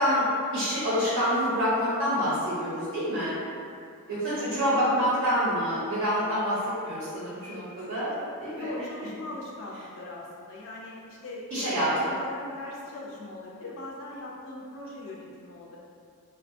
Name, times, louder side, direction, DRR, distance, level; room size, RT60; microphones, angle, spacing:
voice 1, 0.0-3.4 4.1-8.1 8.4-8.7 11.5-12.1, equal, 65° right, -10 dB, 0.6 m, -27 dB
voice 2, 4.2-5.1 8.1-8.2 8.5-15.8, left 2 dB, 60° left, -3 dB, 0.3 m, -40 dB
2.6 x 2.2 x 2.5 m, 2.5 s
head